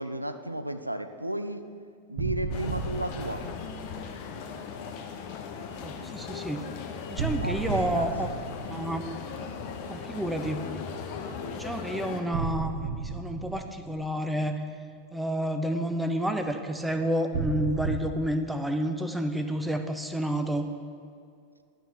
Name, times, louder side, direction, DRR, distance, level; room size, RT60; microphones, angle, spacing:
voice 1, 0.0-1.7 2.1-3.4 7.4-8.3, right 1 dB, 85° right, 9 dB, 0.4 m, -34 dB
sound 1, 2.2-4.2 7.2-9.5 12.3-14.4 17.3-18.0, right 4 dB, 50° right, 1.4 m, -33 dB
sound 2, 2.5-12.2, left 6 dB, 45° left, 0.9 m, -38 dB
voice 2, 5.8-6.6 7.1-8.3 8.7-9.0 9.9-10.6 11.5-14.6 15.1-20.7, right 1 dB, 5° right, 7 dB, 0.6 m, -30 dB
12.0 x 4.4 x 6.2 m, 2.3 s
figure-of-eight pair, 90°, 0 cm